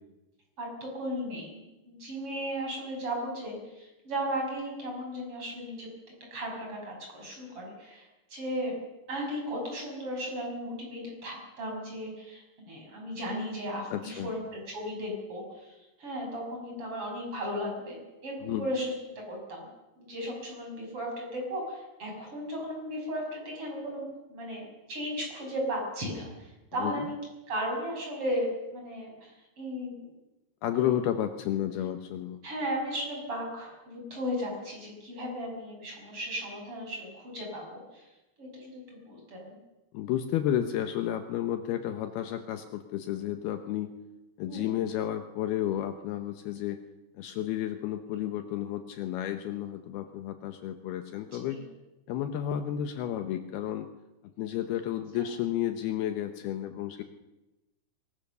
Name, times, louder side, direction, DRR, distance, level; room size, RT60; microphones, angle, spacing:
voice 1, 0.6-5.9 6.3-8.7 9.1-19.7 20.0-27.1 27.5-30.1 30.7-31.0 32.4-38.1 38.4-39.6 44.5-44.7 51.5-51.6 55.2-55.3, equal, 30° right, 0 dB, 7.3 m, -36 dB
voice 2, 13.9-14.3 18.4-18.7 26.8-26.9 30.6-32.4 39.9-43.9 44.4-46.8 47.2-51.6 52.1-53.9 54.4-57.0, left 11 dB, 75° left, 8 dB, 2.7 m, -32 dB
23.0 x 21.0 x 6.8 m, 1.0 s
omnidirectional pair, 5.0 m